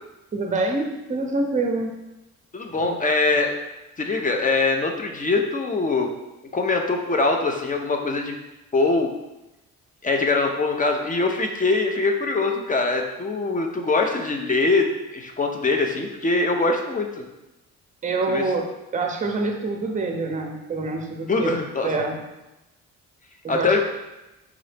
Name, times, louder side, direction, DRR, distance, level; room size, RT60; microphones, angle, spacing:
voice 1, 0.3-1.9 2.7-2.9 18.0-22.2 23.4-23.8, right 3 dB, 25° right, 3 dB, 0.7 m, -26 dB
voice 2, 2.5-3.5 4.0-6.1 6.5-8.4 8.7-9.1 10.0-17.2 18.3-18.4 21.3-21.9 23.5-23.8, left 3 dB, 25° left, 3 dB, 0.6 m, -23 dB
4.8 x 2.6 x 3.3 m, 0.99 s
cardioid pair, 90°, 30 cm